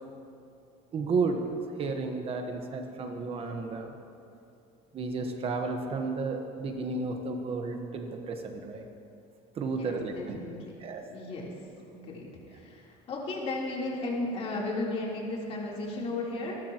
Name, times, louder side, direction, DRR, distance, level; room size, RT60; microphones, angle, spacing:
voice 1, 0.9-3.9 4.9-8.9 9.5-10.4 10.8-11.0, right 4 dB, 40° right, 4 dB, 1.3 m, -32 dB
voice 2, 9.8-10.8 11.1-11.5 11.9-12.8 13.1-16.6, left 2 dB, 40° left, -4 dB, 3.6 m, -34 dB
26.5 x 13.0 x 3.0 m, 2.6 s
cardioid pair, 115°, 15 cm